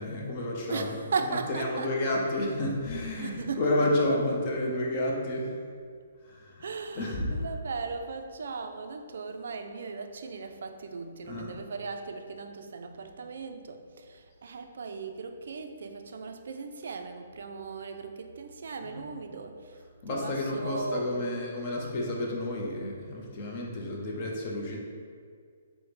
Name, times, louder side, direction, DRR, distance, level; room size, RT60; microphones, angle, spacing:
voice 1, 0.0-1.0 1.5-5.5 6.2-6.6 7.0-7.3 11.3-11.5 18.8-19.0 20.0-24.8, left 1 dB, 40° left, -2 dB, 0.7 m, -30 dB
voice 2, 0.7-2.0 3.2-4.1 6.6-21.1, right 4 dB, 70° right, 6 dB, 0.3 m, -37 dB
4.8 x 2.1 x 3.0 m, 2.1 s
hypercardioid pair, 145°, 0 cm